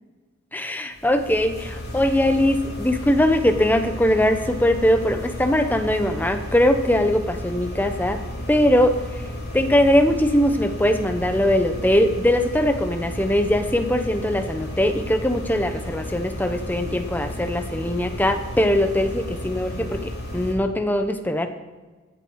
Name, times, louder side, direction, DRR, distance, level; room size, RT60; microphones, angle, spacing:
voice 1, 0.5-8.2 8.5-9.0 9.5-20.0 20.3-21.5, left 1 dB, 10° left, 7 dB, 0.9 m, -21 dB
sound 1, 0.9-20.5, left 1 dB, 45° left, 3.5 m, -33 dB
16.0 x 10.5 x 4.7 m, 1.3 s
head